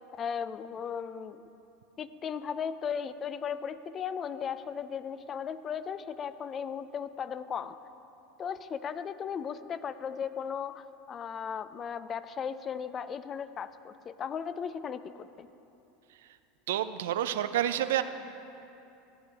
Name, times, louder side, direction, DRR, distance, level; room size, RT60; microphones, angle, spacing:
voice 1, 0.1-1.4 2.0-7.8 8.4-15.5, left 7 dB, 35° left, 13 dB, 0.4 m, -36 dB
voice 2, 16.7-18.0, right 11 dB, 75° right, 11 dB, 0.4 m, -28 dB
14.0 x 9.1 x 3.4 m, 2.8 s
hypercardioid pair, 90°, 0 cm